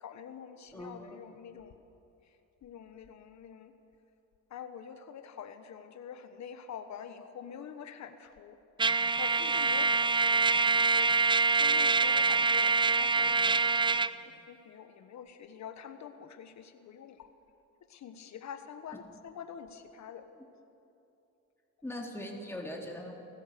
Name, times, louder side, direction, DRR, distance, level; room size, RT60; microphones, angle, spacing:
voice 1, 0.0-1.8 2.6-3.7 4.5-8.6 9.2-17.3 17.9-20.3, left 8 dB, 65° left, 9 dB, 1.3 m, -46 dB
voice 2, 0.7-1.2 21.8-23.2, left 1 dB, 10° left, 0 dB, 3.4 m, -40 dB
Trumpet, 8.8-14.1, right 4 dB, 15° right, 0.5 m, -25 dB
29.5 x 14.5 x 6.8 m, 2.9 s
cardioid pair, 90°, 30 cm